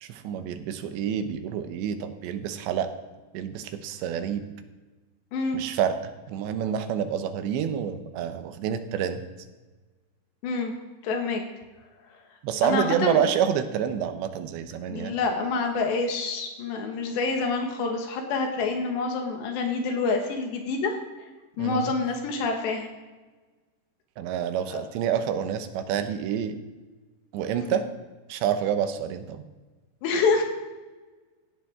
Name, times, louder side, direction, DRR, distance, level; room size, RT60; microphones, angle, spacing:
voice 1, 0.0-2.9 3.3-4.4 5.5-6.0 6.3-9.2 12.4-15.2 21.6-21.9 24.2-26.5 27.3-27.8 28.3-29.4, right 8 dB, 85° right, 9 dB, 3.2 m, -28 dB
voice 2, 11.0-11.4 12.6-13.2 14.9-21.0 21.6-22.9 24.7-24.8 27.7-27.8 30.0-30.4, left 4 dB, 80° left, 3 dB, 3.8 m, -27 dB
17.0 x 14.0 x 3.7 m, 1.3 s
omnidirectional pair, 4.9 m